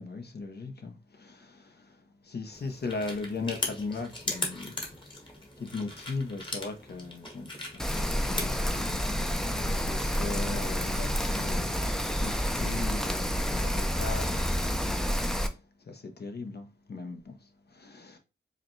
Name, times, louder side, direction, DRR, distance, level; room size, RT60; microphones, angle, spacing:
voice 1, 0.0-2.0 2.2-4.7 5.6-15.6 15.9-18.2, left 3 dB, 50° left, 0.7 m, -39 dB
sound 1, 2.5-8.5, left 1 dB, 25° left, 1.2 m, -38 dB
Rain, 7.8-15.5, equal, ahead, 0.5 m, -29 dB
4.9 x 2.2 x 3.0 m
wide cardioid pair, 80°, 21 cm